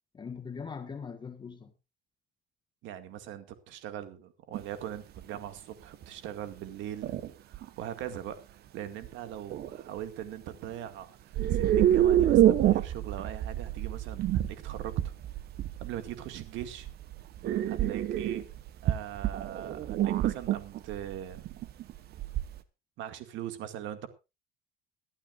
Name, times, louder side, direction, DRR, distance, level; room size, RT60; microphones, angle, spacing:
voice 1, 0.1-1.7, left 6 dB, 20° left, 1.4 m, -41 dB
voice 2, 2.8-7.2 7.4-15.1 15.8-16.9 17.6-18.5 18.8-21.4 23.0-24.1, right 11 dB, 65° right, 2.1 m, -41 dB
sound 1, 4.5-4.6 5.2-5.4 6.0-6.1 7.0-7.7 9.0-9.1 9.5-9.9 11.3-22.6, right 12 dB, 50° right, 1.1 m, -27 dB
22.0 x 11.5 x 2.5 m
cardioid pair, 155°, 21 cm